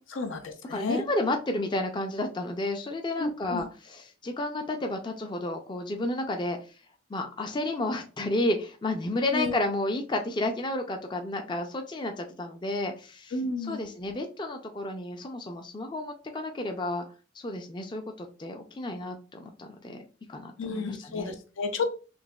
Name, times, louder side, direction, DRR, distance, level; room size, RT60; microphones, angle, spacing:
voice 1, 0.1-1.0 3.2-3.6 9.3-9.5 13.3-13.8 20.6-22.0, left 3 dB, 80° left, 6 dB, 0.6 m, -31 dB
voice 2, 0.7-6.6 7.1-17.0 17.3-21.3, left 2 dB, 25° left, 4 dB, 0.4 m, -31 dB
3.9 x 2.8 x 2.3 m, 0.35 s
head